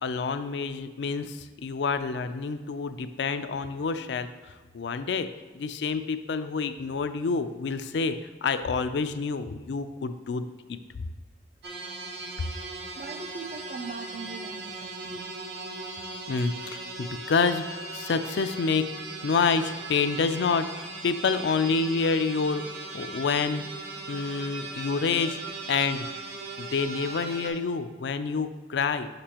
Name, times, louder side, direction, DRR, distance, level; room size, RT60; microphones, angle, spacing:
voice 1, 0.0-4.3 4.7-5.3 5.5-8.2 8.4-10.8 16.3-17.6 17.9-18.9 19.2-22.6 22.9-23.6 24.1-25.4 25.7-26.1 26.6-29.1, left 4 dB, 75° left, 10 dB, 0.4 m, -28 dB
sound 1, 11.6-27.5, right 3 dB, 65° right, 0.8 m, -39 dB
voice 2, 13.0-15.3, right 4 dB, 45° right, 9 dB, 0.3 m, -40 dB
6.7 x 5.9 x 2.9 m, 1.3 s
head